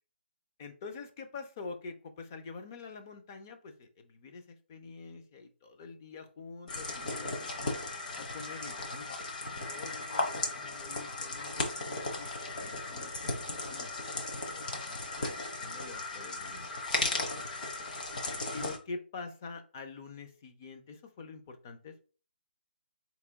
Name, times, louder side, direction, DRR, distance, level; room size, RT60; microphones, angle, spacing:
voice 1, 0.6-7.6 8.2-12.3 12.6-14.1 14.4-14.8 15.2-16.8 17.2-17.3 18.5-22.0, left 4 dB, 20° left, 6 dB, 0.4 m, -46 dB
sound 1, 6.7-18.8, left 2 dB, 45° left, 1.0 m, -36 dB
4.2 x 2.9 x 3.4 m, 0.37 s
hypercardioid pair, 175°, 6 cm